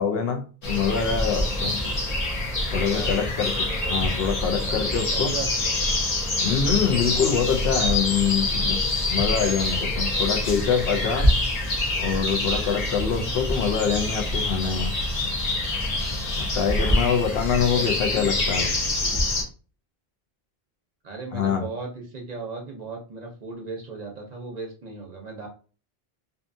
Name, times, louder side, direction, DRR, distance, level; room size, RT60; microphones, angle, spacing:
voice 1, 0.0-1.7 2.7-5.3 6.4-8.8 9.1-11.3 12.0-14.9 15.7-15.9 16.4-18.7 21.3-21.7, left 7 dB, 75° left, 0.8 m, -25 dB
sound 1, 0.6-19.4, left 1 dB, 45° left, 0.7 m, -25 dB
voice 2, 4.4-5.8 8.2-8.5 17.5-19.2 21.0-25.5, right 4 dB, 50° right, 0.6 m, -37 dB
2.6 x 2.3 x 2.5 m
omnidirectional pair, 1.0 m